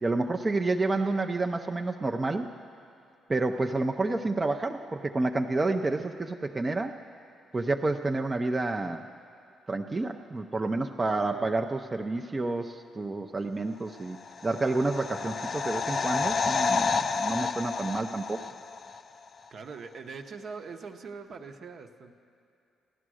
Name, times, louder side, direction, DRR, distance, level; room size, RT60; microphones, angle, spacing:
voice 1, 0.0-2.5 3.3-6.9 7.5-9.0 9.7-14.2 14.4-18.4, right 2 dB, 25° right, 4 dB, 0.5 m, -29 dB
voice 2, 11.0-11.6 19.5-22.1, right 5 dB, 55° right, 5 dB, 0.9 m, -42 dB
sound 1, 14.1-19.0 19.3-19.4, left 5 dB, 50° left, 0.4 m, -30 dB
15.0 x 11.5 x 6.3 m, 2.6 s
cardioid pair, 90°, 0 cm